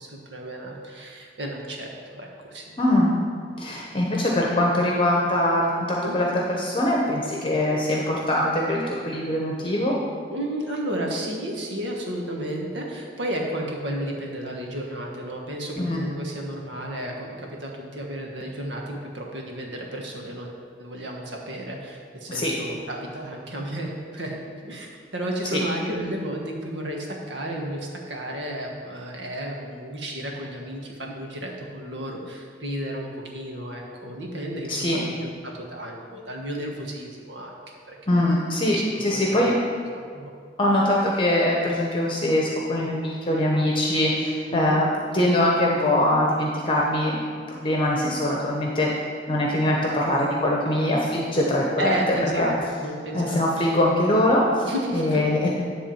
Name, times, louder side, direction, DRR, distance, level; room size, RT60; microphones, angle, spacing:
voice 1, 0.0-2.6 6.0-6.2 10.3-20.5 20.8-37.5 37.9-38.2 38.7-39.5 39.9-40.3 44.5-44.8 51.8-53.7 54.6-55.5, right 1 dB, 90° right, 0 dB, 1.4 m, -32 dB
voice 2, 2.8-3.2 3.6-9.9 15.8-16.0 22.3-22.5 25.5-25.6 34.7-35.0 38.1-39.6 40.6-44.9 45.1-47.1 47.5-48.9 49.3-51.9 52.4-52.5 53.1-54.7 54.9-55.5, left 1 dB, 30° left, -2 dB, 0.9 m, -22 dB
10.5 x 3.6 x 7.1 m, 2.1 s
head